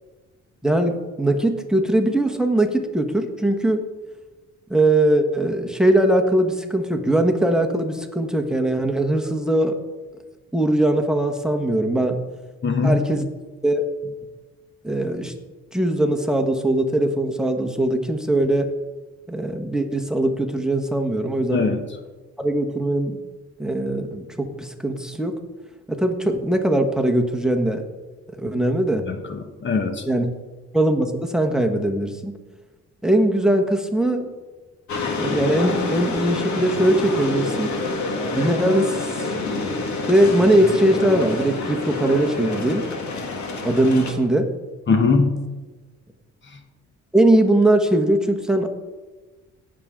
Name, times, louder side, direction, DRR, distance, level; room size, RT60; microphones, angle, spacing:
voice 1, 0.6-3.8 4.7-9.8 10.5-12.2 12.8-13.2 13.6-13.8 14.8-15.3 15.7-18.7 19.3-21.6 22.4-23.2 23.6-25.4 25.9-27.8 28.4-29.0 30.1-30.3 30.7-32.3 33.0-34.3 35.2-37.7 38.3-39.3 40.1-42.8 43.6-44.5 47.1-48.7, right 1 dB, ahead, 5 dB, 1.3 m, -20 dB
voice 2, 12.6-13.1 21.5-21.8 29.1-30.0 44.9-45.4 46.5-46.6, left 4 dB, 40° left, 6 dB, 1.2 m, -21 dB
sound 1, 34.9-44.1, left 3 dB, 70° left, 2.0 m, -27 dB
17.5 x 7.5 x 3.8 m, 1.2 s
cardioid pair, 90°, 30 cm